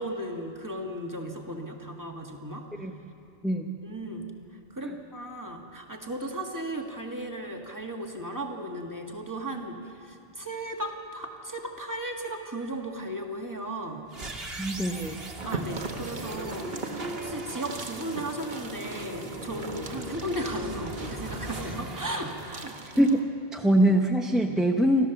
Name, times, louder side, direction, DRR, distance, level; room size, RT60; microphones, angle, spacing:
voice 1, 0.0-2.7 3.8-4.3 4.7-14.1 15.4-22.8, right 1 dB, 20° right, 2 dB, 1.8 m, -36 dB
sound 1, 14.1-23.3, right 2 dB, 65° right, 1.8 m, -39 dB
voice 2, 14.4-15.2 23.0-23.2 23.5-25.1, right 1 dB, ahead, 2 dB, 0.7 m, -23 dB
sound 2, 15.4-23.2, right 3 dB, 50° right, 1.4 m, -41 dB
28.5 x 13.0 x 7.0 m, 2.5 s
omnidirectional pair, 1.1 m